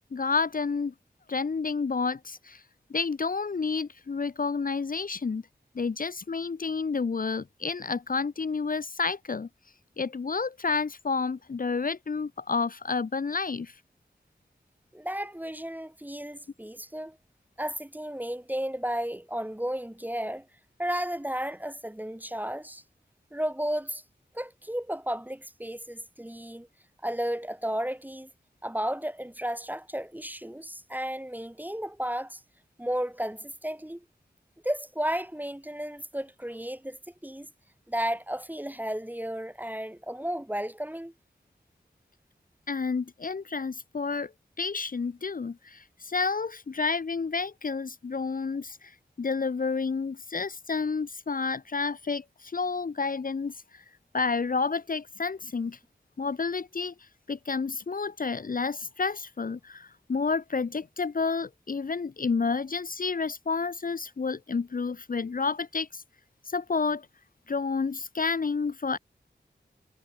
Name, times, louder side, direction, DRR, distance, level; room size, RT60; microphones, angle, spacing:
voice 1, 0.1-0.9 1.3-2.6 2.9-5.4 5.7-9.5 10.0-13.7 42.7-44.3 44.6-48.9 49.2-53.8 54.1-55.8 56.2-56.9 57.3-66.0 66.5-67.1 67.5-69.0, left 4 dB, 50° left, 0.6 m, -30 dB
voice 2, 14.9-17.2 17.6-20.5 20.8-22.8 23.3-24.0 24.3-26.7 27.0-28.3 28.6-32.4 32.8-34.0 34.6-37.5 37.9-41.1, equal, 10° right, 1.0 m, -33 dB
cardioid pair, 40°, 18 cm